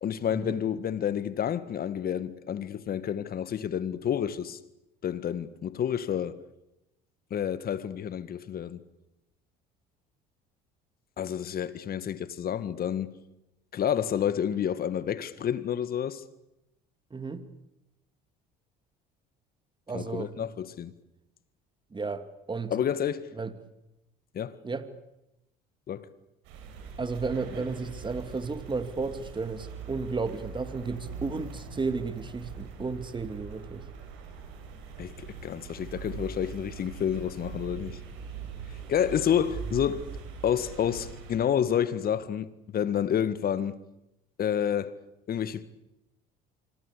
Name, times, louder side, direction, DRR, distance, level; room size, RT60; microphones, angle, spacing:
voice 1, 0.0-4.6 5.0-6.4 7.3-8.8 11.2-13.2 13.7-16.2 19.9-20.9 22.7-23.3 24.3-24.5 25.9-26.1 35.0-38.0 38.9-40.0 40.4-43.8 44.4-44.9 45.3-45.6, left 9 dB, 45° left, 1.8 m, -29 dB
voice 2, 17.1-17.4 19.9-20.3 21.9-22.2 22.5-22.7 23.4-23.5 24.6-24.9 27.0-33.8, right 4 dB, 25° right, 2.6 m, -33 dB
Soundwalk - Nyhavn Copenhagen (Denmark), 26.4-41.4, right 5 dB, 70° right, 7.4 m, -42 dB
26.0 x 24.0 x 8.5 m
hypercardioid pair, 75°, 21 cm